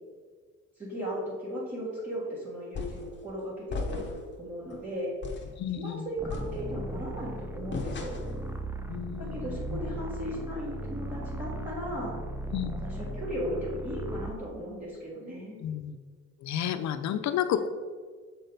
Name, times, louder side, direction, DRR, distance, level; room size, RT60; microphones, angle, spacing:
voice 1, 0.8-5.1 5.7-8.3 9.2-12.2 12.8-15.6, equal, 25° right, -9 dB, 1.9 m, -36 dB
sound 1, 2.7-3.1 3.7-4.3 4.7-4.8 5.2-5.6 6.3-7.0 7.7-8.4, left 3 dB, 40° left, 1.0 m, -36 dB
voice 2, 5.6-6.1 8.9-9.8 12.5-12.7 15.6-16.0 16.4-17.7, left 10 dB, 65° left, 11 dB, 0.6 m, -31 dB
sound 2, 6.2-14.4, right 1 dB, 5° right, 0.4 m, -37 dB
6.4 x 4.3 x 4.0 m, 1.5 s
cardioid pair, 90°, 30 cm